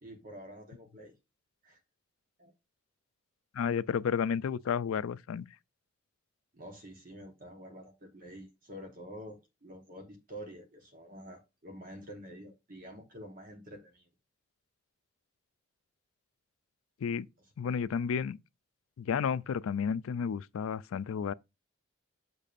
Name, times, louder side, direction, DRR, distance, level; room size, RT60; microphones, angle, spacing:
voice 1, 0.0-1.1 1.6-1.8 2.4-2.5 6.5-14.1, equal, 40° right, 1.1 m, -48 dB
voice 2, 3.5-5.5 17.0-17.3 17.6-18.4 19.0-21.3, left 7 dB, 85° left, 0.4 m, -32 dB
6.8 x 6.3 x 2.5 m
head